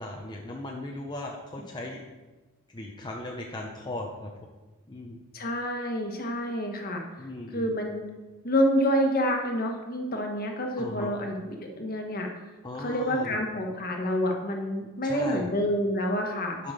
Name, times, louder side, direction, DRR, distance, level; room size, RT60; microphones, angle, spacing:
voice 1, 0.0-2.0 2.7-4.3 4.9-5.2 7.2-7.7 10.8-11.1 12.6-13.4 15.0-15.5 16.6-16.7, left 1 dB, 20° left, -1 dB, 0.8 m, -37 dB
voice 2, 5.3-7.0 7.5-8.0 8.4-12.3 12.8-16.6, equal, 45° left, 2 dB, 1.4 m, -28 dB
11.0 x 5.8 x 5.1 m, 1.2 s
head